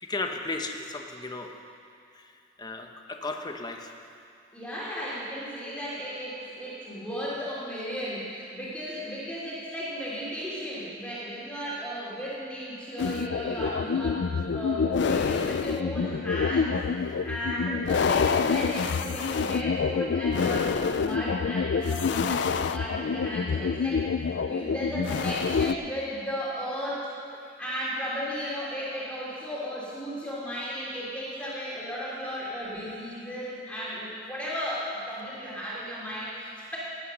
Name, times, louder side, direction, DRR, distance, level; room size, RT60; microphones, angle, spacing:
voice 1, 0.0-1.5 2.2-2.3 2.6-3.9 13.6-13.9 17.1-17.4, left 2 dB, 20° left, 4 dB, 1.0 m, -35 dB
voice 2, 4.5-16.8 17.2-24.0 24.4-27.1 27.6-36.8, equal, 5° left, -8 dB, 3.1 m, -35 dB
sound 1, 13.0-25.7, left 5 dB, 65° left, 0.4 m, -27 dB
17.5 x 8.9 x 6.4 m, 2.4 s
head